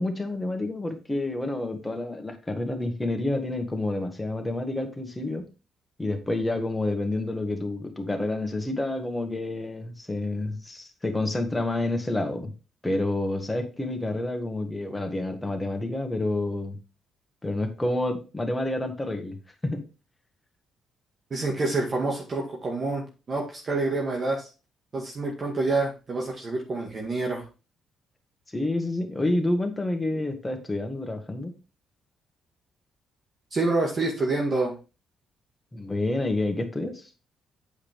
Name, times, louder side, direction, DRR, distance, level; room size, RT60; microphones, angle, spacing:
voice 1, 0.0-5.5 6.0-12.5 12.8-16.8 17.4-19.4 19.6-19.8 28.5-31.5 35.7-37.1, left 2 dB, 15° left, 4 dB, 1.7 m, -29 dB
voice 2, 21.3-24.5 24.9-27.5 33.5-34.8, right 3 dB, 40° right, -1 dB, 1.8 m, -27 dB
8.4 x 4.9 x 3.5 m, 0.32 s
cardioid pair, 90°, 0 cm